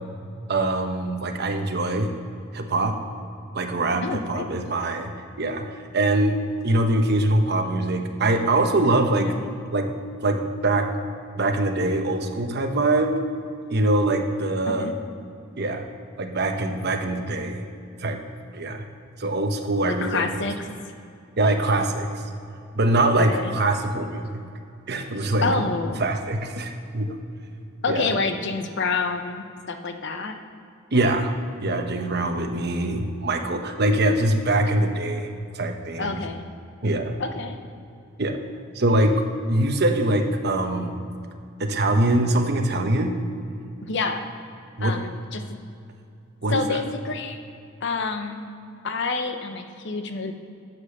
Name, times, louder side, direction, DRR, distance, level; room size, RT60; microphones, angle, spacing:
voice 1, 0.5-2.1 2.5-3.0 3.5-5.1 5.4-9.3 9.7-9.9 10.2-11.0 11.4-13.2 13.7-14.9 15.6-15.8 16.2-17.6 18.0-18.2 18.5-18.8 19.2-20.4 21.4-22.2 22.7-24.2 24.9-25.6 26.0-27.2 27.9-28.1 30.9-31.3 31.6-36.2 36.8-37.2 38.2-38.4 38.7-40.9 41.6-43.1 44.8-45.0 46.4-46.8, right 2 dB, 55° right, 5 dB, 1.0 m, -23 dB
voice 2, 4.0-4.5 9.2-9.4 14.7-14.9 19.8-20.5 23.2-23.5 25.4-26.0 27.8-30.4 36.0-36.5 37.2-37.6 43.8-44.3 44.8-45.4 46.5-47.4 47.8-48.5 48.8-50.3, left 4 dB, 60° left, 7 dB, 0.8 m, -28 dB
9.8 x 7.7 x 6.6 m, 2.5 s
head